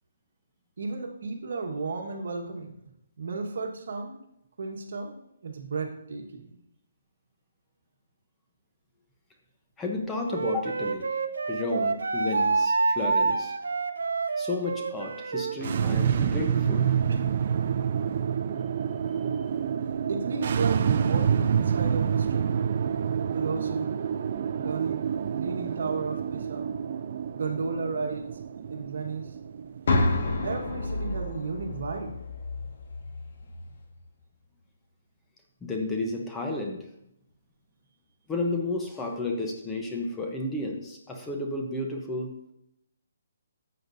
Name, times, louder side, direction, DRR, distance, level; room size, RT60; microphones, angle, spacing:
voice 1, 0.8-2.7 3.2-4.2 4.6-6.6 17.1-17.2 20.1-22.6 23.1-23.9 24.5-25.0 25.3-26.7 27.3-28.3 28.7-29.3 30.4-32.2, right 4 dB, 65° right, 3 dB, 1.4 m, -34 dB
voice 2, 9.8-11.1 11.5-13.5 14.4-17.0 35.6-36.9 38.3-42.3, left 2 dB, 10° left, 1 dB, 0.8 m, -32 dB
Wind instrument woodwind instrument, 10.3-15.6, right 4 dB, 90° right, 0.6 m, -27 dB
sound 1, 15.5-30.8, right 7 dB, 45° right, 0.4 m, -28 dB
sound 2, 29.9-33.8, left 2 dB, 55° left, 1.7 m, -30 dB
11.5 x 7.8 x 2.7 m, 0.81 s
hypercardioid pair, 165°, 0 cm